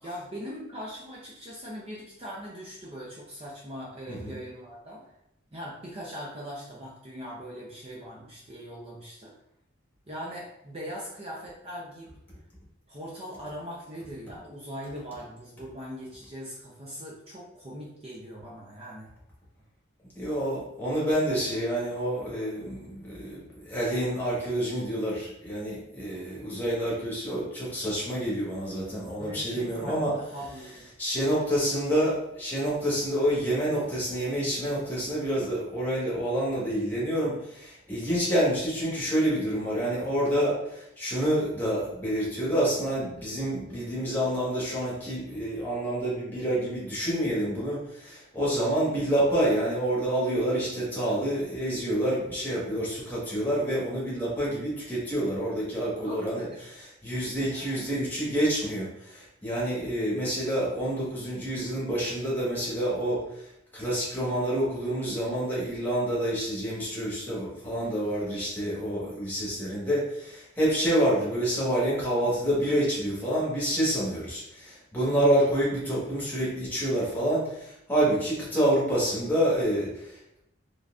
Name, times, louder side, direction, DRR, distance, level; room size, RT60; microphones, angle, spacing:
voice 1, 0.0-5.0 5.5-9.3 10.1-12.1 12.9-19.1 29.2-30.1 30.3-30.9 56.0-56.7 57.5-57.8, equal, 30° right, -4 dB, 0.6 m, -40 dB
voice 2, 20.2-30.1 31.0-56.5 57.0-63.2 63.7-80.1, right 1 dB, 10° left, -6 dB, 1.3 m, -28 dB
3.8 x 3.2 x 2.4 m, 0.79 s
head